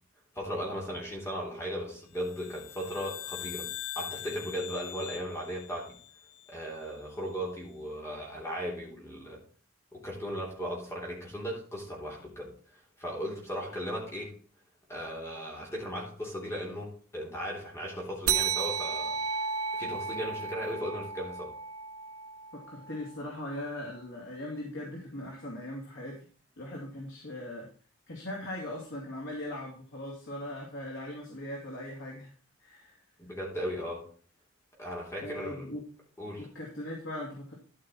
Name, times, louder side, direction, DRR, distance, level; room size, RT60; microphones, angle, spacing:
voice 1, 0.3-3.7 3.9-5.9 6.5-9.4 9.9-12.5 13.0-14.3 14.9-19.2 19.7-21.5 33.2-34.1 34.8-35.7 36.2-36.5, equal, 10° left, -3 dB, 3.1 m, -37 dB
sound 1, 2.2-6.7, left 12 dB, 75° left, 0.9 m, -42 dB
sound 2, 18.3-23.2, right 6 dB, 65° right, 0.6 m, -33 dB
voice 2, 22.7-26.3 26.6-27.7 28.1-32.3 32.6-33.0 35.2-35.8 36.4-37.5, left 1 dB, 55° left, -2 dB, 2.6 m, -39 dB
12.5 x 5.7 x 4.3 m, 0.42 s
head